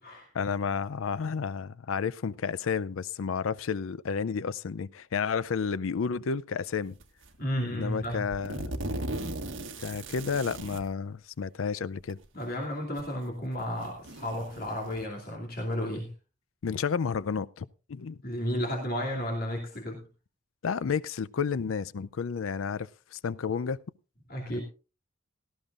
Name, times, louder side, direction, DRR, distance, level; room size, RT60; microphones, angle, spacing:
voice 1, 0.3-7.0 7.7-8.7 9.8-12.2 16.6-18.2 20.6-23.8, left 6 dB, 90° left, 0.5 m, -31 dB
sound 1, 7.0-7.3 7.9-10.9 12.0-12.1 13.0-13.1 13.6-15.0, right 1 dB, 75° right, 1.5 m, -38 dB
voice 2, 7.4-8.2 12.3-16.1 18.2-20.0 24.3-24.6, equal, 45° left, 2.6 m, -33 dB
17.5 x 13.5 x 2.5 m
head